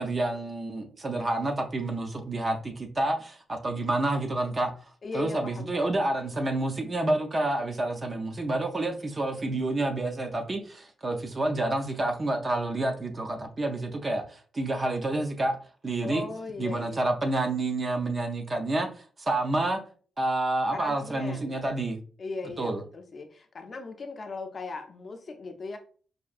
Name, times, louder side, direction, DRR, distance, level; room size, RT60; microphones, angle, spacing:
voice 1, 0.0-4.7 5.1-15.6 15.8-16.2 16.6-19.8 20.2-22.0 22.6-22.8, right 2 dB, 25° right, 0.4 m, -29 dB
voice 2, 5.0-6.0 16.0-17.1 20.7-21.5 22.2-25.8, left 3 dB, 35° left, 0.4 m, -38 dB
4.8 x 2.5 x 2.4 m
wide cardioid pair, 170°, 0 cm